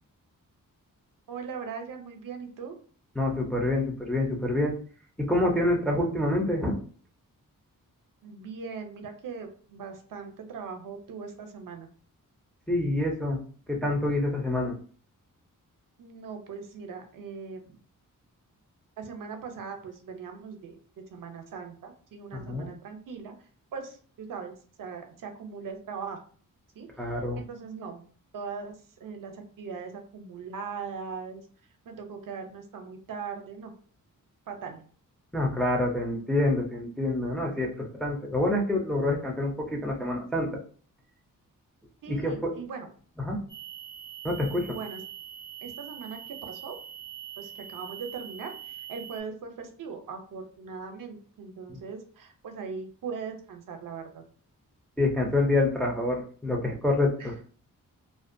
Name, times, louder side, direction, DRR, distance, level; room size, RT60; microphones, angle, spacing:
voice 1, 1.3-2.8 8.2-11.9 16.0-17.8 19.0-20.8 21.1-26.2 26.7-27.1 27.4-28.0 28.3-31.5 31.8-33.7 34.5-34.8 42.0-42.9 44.7-45.0 45.6-46.8 47.4-54.2 57.2-57.3, right 5 dB, 70° right, 5 dB, 0.5 m, -40 dB
voice 2, 3.2-4.8 5.2-6.8 12.7-13.4 13.7-14.7 22.3-22.7 27.0-27.4 35.3-40.6 42.1-42.5 43.2-43.4 44.2-44.8 51.7-51.8 55.0-57.3, left 2 dB, 5° left, -1 dB, 0.4 m, -27 dB
sound 1, 43.5-49.2, right 9 dB, 75° left, 1.2 m, -43 dB
2.4 x 2.1 x 2.5 m, 0.43 s
wide cardioid pair, 145°, 33 cm